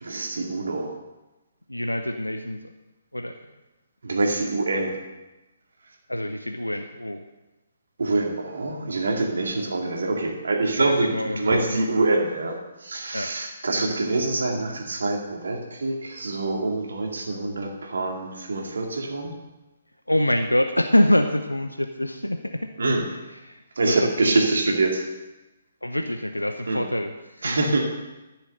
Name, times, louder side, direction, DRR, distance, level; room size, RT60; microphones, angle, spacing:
voice 1, 0.0-0.9 4.0-4.9 8.0-19.3 22.8-23.1 23.8-25.0 26.7-26.8 27.4-27.8, right 2 dB, 60° right, 1 dB, 2.4 m, -25 dB
voice 2, 1.7-2.6 3.1-3.4 6.1-7.2 9.6-9.7 10.8-11.8 13.1-13.4 13.8-14.2 20.1-22.6 23.3-24.4 25.8-27.6, left 1 dB, 85° left, 7 dB, 0.7 m, -25 dB
13.5 x 7.4 x 6.5 m, 1.0 s
figure-of-eight pair, 130°, 0 cm